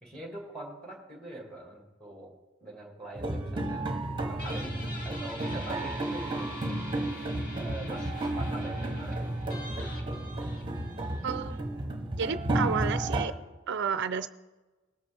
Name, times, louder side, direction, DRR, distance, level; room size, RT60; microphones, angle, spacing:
voice 1, 0.0-4.0 4.3-6.8 7.5-9.3, right 1 dB, 5° left, -1 dB, 2.0 m, -43 dB
sound 1, 3.1-13.3, right 1 dB, 25° right, 1.1 m, -32 dB
Guitar, 4.4-11.6, left 1 dB, 45° left, 2.2 m, -45 dB
voice 2, 11.2-11.7 12.2-13.3 13.7-14.3, right 6 dB, 60° right, 12 dB, 0.5 m, -31 dB
19.0 x 8.6 x 3.4 m, 1.2 s
head